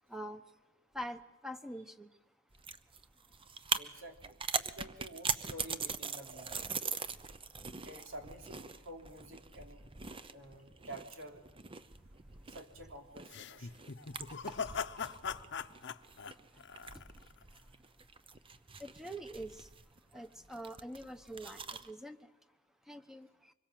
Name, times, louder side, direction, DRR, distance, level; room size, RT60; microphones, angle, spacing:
voice 1, 0.1-0.4 0.9-2.1 14.5-14.6 16.5-16.6 18.8-19.7 20.1-22.3 22.9-23.5, equal, ahead, 1.0 m, -45 dB
sound 1, 2.5-21.9, right 5 dB, 25° right, 0.8 m, -42 dB
voice 2, 3.7-6.6 7.8-9.9 10.3-11.5 12.5-13.8 14.3-14.4, right 1 dB, 85° right, 3.3 m, -50 dB
sound 2, 13.3-17.4, left 6 dB, 60° left, 0.8 m, -41 dB
25.0 x 22.0 x 7.6 m
head